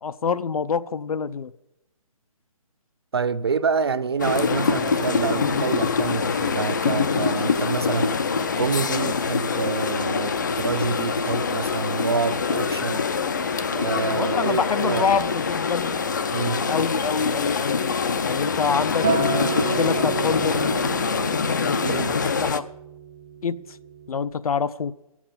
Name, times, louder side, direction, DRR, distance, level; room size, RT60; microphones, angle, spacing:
voice 1, 0.0-1.5 14.1-16.0 16.7-17.8 18.2-20.7 21.6-22.7 23.4-23.6 24.1-24.9, left 6 dB, 80° left, 0.6 m, -26 dB
voice 2, 3.1-8.2 8.6-13.0 13.7-15.1 16.3-16.6 21.8-22.2, right 5 dB, 45° right, 0.5 m, -27 dB
sound 1, 4.2-22.6, left 5 dB, 30° left, 0.5 m, -25 dB
Acoustic guitar, 19.0-24.2, right 4 dB, 10° right, 0.8 m, -30 dB
13.0 x 7.2 x 7.3 m
hypercardioid pair, 170°, 19 cm